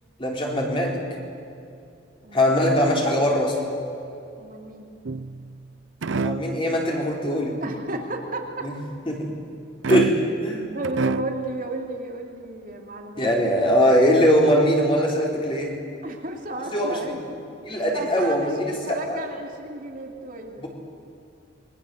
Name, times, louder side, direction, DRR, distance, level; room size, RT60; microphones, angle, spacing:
voice 1, 0.2-1.0 2.3-3.6 6.2-7.6 8.6-8.7 9.1-9.3 9.9-10.7 13.2-15.8 16.7-17.0 17.6-18.6 18.9-19.2 20.6-20.7, equal, 25° left, -1 dB, 4.4 m, -21 dB
voice 2, 2.2-2.7 4.4-4.9 7.6-8.5 10.7-13.5 16.0-17.4 17.9-20.7, right 2 dB, 45° right, 1 dB, 2.8 m, -33 dB
sound 1, 5.1-5.6 6.0-6.6 9.8-10.5 10.8-11.5, right 3 dB, 70° right, 0.6 m, -27 dB
28.5 x 22.5 x 8.0 m, 2.6 s
head